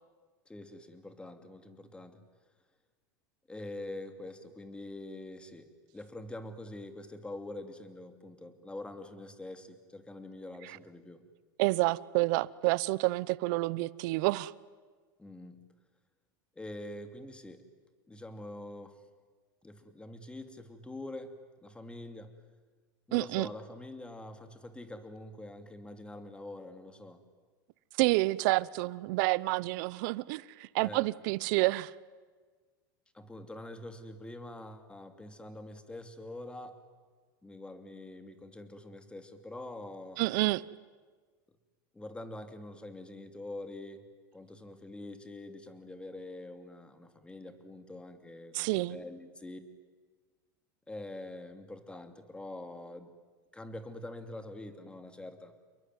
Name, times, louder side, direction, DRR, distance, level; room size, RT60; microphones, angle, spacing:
voice 1, 0.5-2.2 3.5-11.2 15.2-15.6 16.5-17.6 18.1-19.0 19.6-22.3 23.1-27.2 30.8-31.1 33.1-36.8 37.4-40.2 41.9-44.0 44.3-49.6 50.9-53.1 53.5-55.5, left 1 dB, 10° left, 2.7 m, -45 dB
voice 2, 11.6-14.5 23.1-23.5 28.0-31.9 40.2-40.6 48.5-49.0, right 21 dB, 65° right, 0.8 m, -29 dB
29.0 x 22.0 x 9.4 m
supercardioid pair, 110°, 11 cm